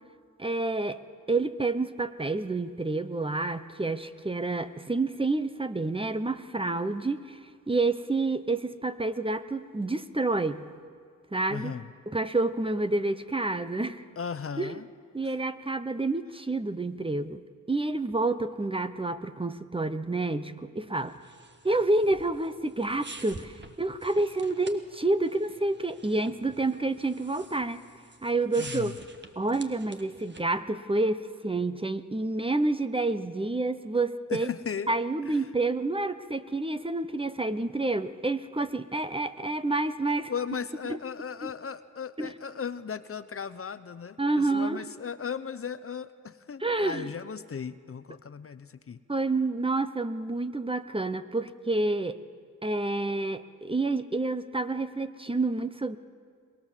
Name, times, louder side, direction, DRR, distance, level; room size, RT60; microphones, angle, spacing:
voice 1, 0.4-1.0 1.3-7.4 7.7-10.6 11.3-11.7 12.1-14.0 14.6-14.7 15.1-17.4 17.7-21.1 21.6-27.8 28.2-28.9 29.4-34.5 34.9-40.3 40.9-41.0 41.4-41.5 42.2-42.3 44.2-44.8 46.6-47.1 49.1-52.2 52.6-56.0, right 2 dB, 15° right, 12 dB, 0.9 m, -29 dB
voice 2, 11.5-11.9 14.2-14.9 28.6-28.9 34.3-34.9 35.2-35.5 40.3-49.0, left 6 dB, 45° left, 13 dB, 0.8 m, -36 dB
sound 1, 21.0-30.6, right 3 dB, 35° right, 1.6 m, -48 dB
23.0 x 21.0 x 7.5 m, 2.1 s
cardioid pair, 65°, 32 cm